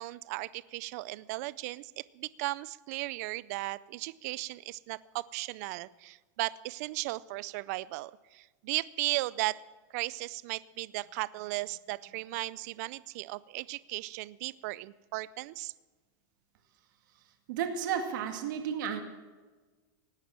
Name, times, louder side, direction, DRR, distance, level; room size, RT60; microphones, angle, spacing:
voice 1, 0.0-9.6 9.9-15.7, right 20 dB, 50° right, 20 dB, 0.4 m, -36 dB
voice 2, 17.5-19.0, right 8 dB, 65° right, 5 dB, 2.1 m, -32 dB
17.5 x 9.8 x 7.4 m, 1.3 s
supercardioid pair, 165°, 11 cm